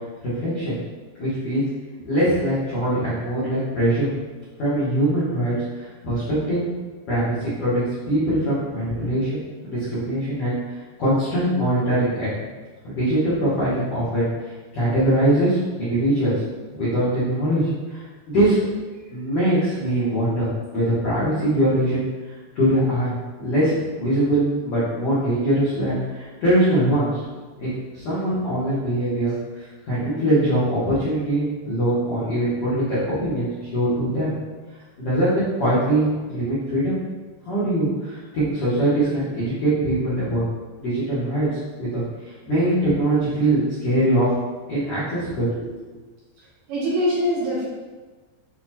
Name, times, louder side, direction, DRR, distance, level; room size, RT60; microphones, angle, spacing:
voice 1, 0.2-0.8 1.2-1.6 2.1-4.1 4.6-6.6 7.1-12.3 12.8-14.3 14.7-16.4 16.7-18.6 19.1-22.1 22.5-27.2 27.6-34.3 35.0-37.0 37.4-40.5 40.8-41.5 41.8-44.3 44.7-45.7, right 1 dB, 85° left, -12 dB, 1.3 m, -22 dB
voice 2, 46.7-47.7, equal, 75° right, -7 dB, 2.1 m, -23 dB
8.0 x 2.9 x 2.2 m, 1.3 s
omnidirectional pair, 4.7 m